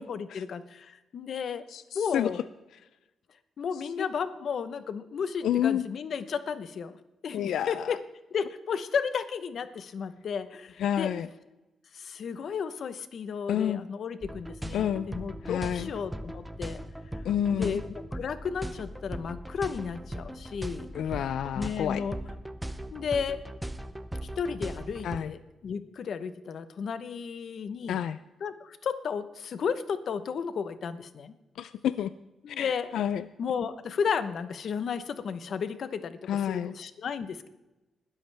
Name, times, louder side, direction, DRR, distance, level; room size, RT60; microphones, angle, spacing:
voice 1, 0.1-1.6 1.9-2.4 3.6-7.0 7.2-8.0 8.3-11.1 11.9-16.8 17.5-17.8 18.1-20.9 21.6-22.2 22.9-23.4 24.4-28.0 28.4-31.3 32.4-32.9 33.4-36.2 36.5-37.5, left 6 dB, 50° left, 12 dB, 0.9 m, -33 dB
voice 2, 1.7-2.3 4.0-4.1 5.4-5.9 7.3-8.0 10.8-11.3 13.5-13.8 14.7-15.1 15.4-15.9 17.2-17.8 20.9-22.0 25.0-25.3 27.9-28.2 31.6-32.1 32.5-33.3 36.3-36.7, left 10 dB, 80° left, 14 dB, 0.4 m, -29 dB
sound 1, 14.2-25.2, right 1 dB, 5° right, 0.6 m, -39 dB
20.5 x 13.0 x 3.4 m, 1.0 s
wide cardioid pair, 170°, 0 cm